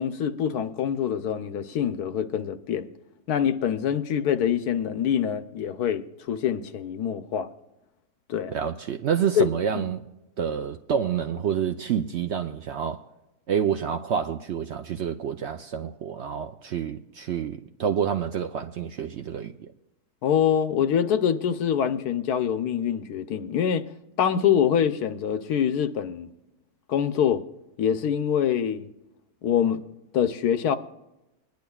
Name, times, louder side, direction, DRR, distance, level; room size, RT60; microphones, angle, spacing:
voice 1, 0.0-2.9 3.3-7.5 8.3-8.5 9.3-9.5 9.7-9.9 20.2-23.9 24.2-26.3 26.9-27.4 27.8-28.9 29.4-29.8 30.1-30.8, left 8 dB, 85° left, 1.3 m, -25 dB
voice 2, 8.5-10.1 10.4-13.0 13.5-19.7, right 8 dB, 65° right, 0.7 m, -28 dB
22.0 x 10.5 x 2.3 m
omnidirectional pair, 1.6 m